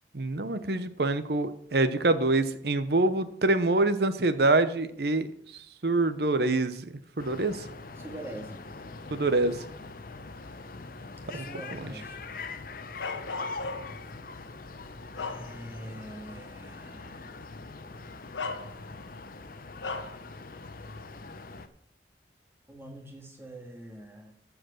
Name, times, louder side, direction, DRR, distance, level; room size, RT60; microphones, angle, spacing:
voice 1, 0.1-5.3 5.8-6.8 7.2-7.6 9.1-9.6 11.3-11.5 11.7-11.9, right 2 dB, 60° right, 12 dB, 0.8 m, -25 dB
sound 1, 7.2-21.7, left 3 dB, 50° left, 0.7 m, -43 dB
voice 2, 8.0-8.6 11.2-12.2 15.1-17.4 22.7-24.4, right 1 dB, 15° right, 2 dB, 1.8 m, -44 dB
Bark, 13.0-14.1 14.7-15.9 16.3-16.5 17.6-17.8 18.3-19.1 19.8-20.2, left 3 dB, 90° left, 1.1 m, -37 dB
14.0 x 4.9 x 6.4 m, 0.69 s
head